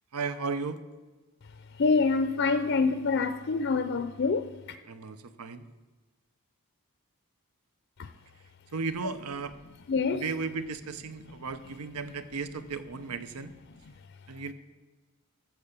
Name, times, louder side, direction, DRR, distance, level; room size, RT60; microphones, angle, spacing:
voice 1, 0.1-0.8 4.8-5.7 8.7-9.6 10.1-13.5 14.3-14.5, right 4 dB, 85° right, 0.7 m, -35 dB
voice 2, 1.8-4.4 8.0-8.1 9.9-10.2, left 4 dB, 50° left, 0.5 m, -26 dB
14.0 x 6.8 x 6.7 m
head